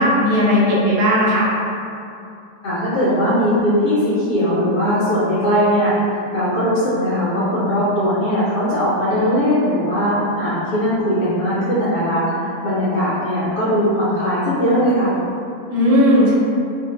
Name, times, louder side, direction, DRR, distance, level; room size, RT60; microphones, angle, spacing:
voice 1, 0.0-1.5 15.7-16.3, equal, 65° right, -6 dB, 1.1 m, -15 dB
voice 2, 2.6-15.2, equal, 70° left, -11 dB, 1.2 m, -19 dB
2.8 x 2.5 x 2.9 m, 2.6 s
omnidirectional pair, 1.8 m